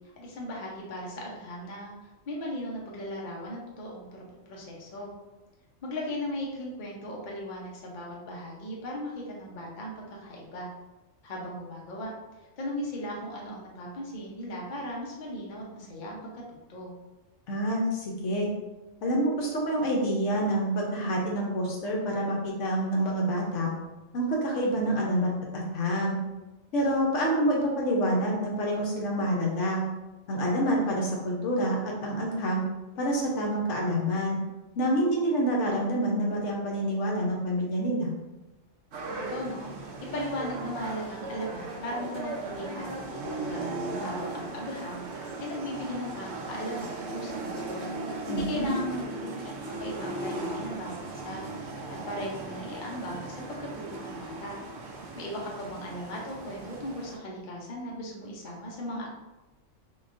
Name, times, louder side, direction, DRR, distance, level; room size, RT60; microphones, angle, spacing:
voice 1, 0.2-5.1 5.8-10.7 11.2-12.1 12.6-16.9 39.1-39.9 40.1-43.7 44.0-47.9 48.2-49.5 49.8-51.4 52.1-54.6 55.1-59.1, left 1 dB, 45° left, -3 dB, 0.8 m, -37 dB
voice 2, 17.5-18.5 19.0-23.7 24.1-26.2 26.7-29.8 30.3-32.6 33.0-34.4 34.8-38.1 48.3-48.7, equal, 75° left, -1 dB, 1.0 m, -27 dB
sound 1, 38.9-57.2, right 2 dB, 65° right, 0.9 m, -37 dB
3.7 x 3.0 x 2.5 m, 1.1 s
omnidirectional pair, 1.3 m